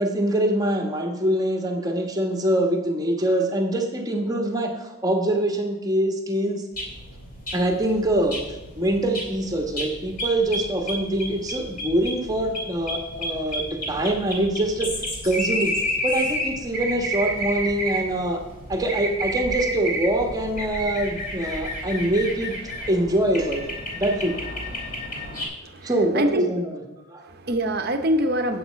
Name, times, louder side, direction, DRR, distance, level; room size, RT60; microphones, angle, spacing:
voice 1, 0.0-6.6 7.5-8.4 8.8-14.9 15.2-15.8 16.0-18.4 18.7-22.5 22.9-23.6 24.0-24.3 25.8-26.6 27.1-27.2, right 1 dB, 15° right, 3 dB, 1.2 m, -24 dB
sound 1, 6.8-25.5, equal, 40° left, 2.6 m, -31 dB
voice 2, 25.6-26.4 27.3-28.6, equal, 45° right, 7 dB, 0.9 m, -24 dB
8.8 x 8.0 x 5.1 m, 1.1 s
head